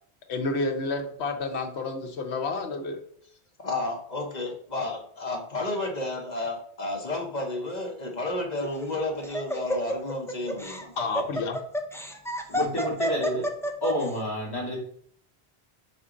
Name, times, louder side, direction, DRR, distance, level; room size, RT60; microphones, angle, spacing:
voice 1, 0.3-3.0 11.0-11.6, left 3 dB, 75° left, 4 dB, 1.1 m, -30 dB
voice 2, 3.6-10.9, left 2 dB, 40° left, 1 dB, 1.1 m, -32 dB
Laughter, 8.6-14.1, equal, 5° left, 0.4 m, -30 dB
voice 3, 12.5-13.4 13.8-14.8, equal, 20° left, -6 dB, 2.3 m, -29 dB
5.5 x 4.5 x 3.8 m, 0.63 s
omnidirectional pair, 1.1 m